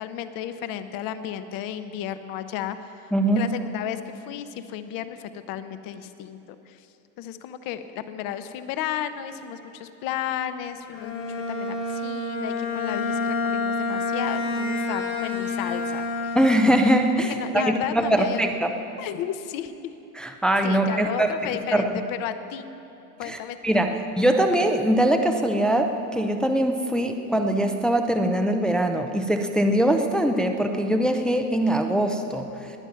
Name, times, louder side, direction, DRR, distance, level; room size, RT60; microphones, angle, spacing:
voice 1, 0.0-6.4 6.7-6.9 7.2-16.4 17.3-18.6 19.0-19.9 20.6-22.6 23.2-24.0, left 10 dB, 50° left, 11 dB, 0.9 m, -33 dB
voice 2, 3.1-3.5 16.3-17.6 17.9-18.7 20.2-21.3 21.7-22.0 23.3-23.4 23.6-32.5, right 1 dB, ahead, 5 dB, 0.4 m, -22 dB
Bowed string instrument, 10.9-17.0, left 3 dB, 75° left, 2.4 m, -28 dB
20.0 x 9.0 x 5.8 m, 2.8 s
supercardioid pair, 135°, 45 cm